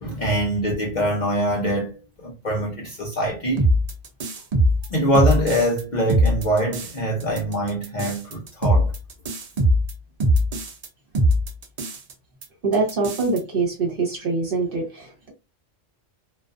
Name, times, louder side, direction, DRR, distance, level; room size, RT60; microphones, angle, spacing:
voice 1, 0.0-3.7 4.9-8.9, equal, 50° left, 0.6 m, -24 dB
sound 1, 3.6-5.8 6.1-6.9 7.2-10.9 11.1-12.1 12.4-12.5 12.7-13.4, equal, 80° right, 0.3 m, -21 dB
voice 2, 12.6-15.3, right 3 dB, 50° right, 1.0 m, -24 dB
2.4 x 2.3 x 2.4 m
omnidirectional pair, 1.3 m